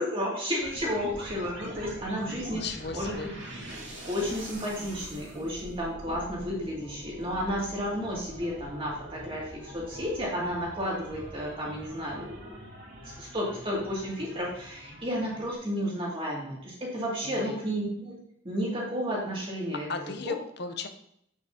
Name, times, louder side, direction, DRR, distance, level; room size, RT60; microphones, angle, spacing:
voice 1, 0.0-2.7 2.9-3.3 4.1-19.9 20.2-20.3, equal, 25° right, -4 dB, 2.3 m, -32 dB
sound 1, 0.6-15.6, right 1 dB, 60° right, 2.6 m, -44 dB
voice 2, 2.5-3.3 17.2-17.6 19.9-20.9, left 4 dB, 55° left, 8 dB, 0.7 m, -36 dB
8.1 x 7.0 x 2.8 m, 0.71 s
head